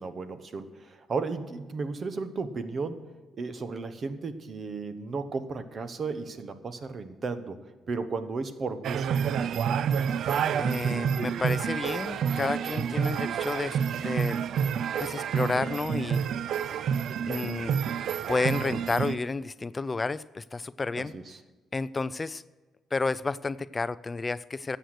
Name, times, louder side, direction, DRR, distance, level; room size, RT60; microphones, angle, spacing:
voice 1, 0.0-3.0 3.4-7.6 7.9-9.1 20.9-21.4, right 4 dB, 45° right, 11 dB, 1.1 m, -34 dB
sound 1, 8.8-19.2, right 7 dB, 70° right, 0.4 m, -28 dB
voice 2, 10.6-14.4 15.0-16.2 17.2-17.8 18.3-21.1 21.7-22.4 22.9-24.8, left 3 dB, 25° left, 16 dB, 0.3 m, -31 dB
12.5 x 7.9 x 6.5 m, 1.3 s
cardioid pair, 90°, 0 cm